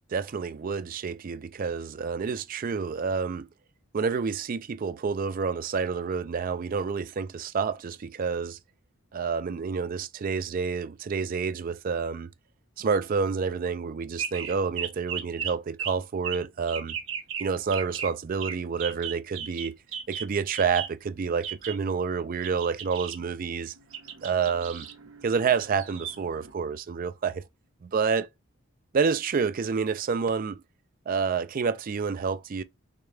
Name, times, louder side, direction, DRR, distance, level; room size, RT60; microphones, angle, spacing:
voice 1, 0.0-3.5 3.9-8.6 9.1-12.3 12.8-17.0 17.4-19.8 20.1-23.7 24.2-24.9 25.2-27.4 27.8-28.3 28.9-30.6 31.1-32.6, right 5 dB, 40° right, 0.3 m, -28 dB
sound 1, 14.2-15.5 15.8-15.9 16.2-16.4 16.7-17.4 17.7-18.1 18.4-18.5 18.8-20.9 21.4-21.7 22.4-26.5, right 8 dB, 65° right, 1.0 m, -36 dB
6.4 x 2.2 x 3.2 m
head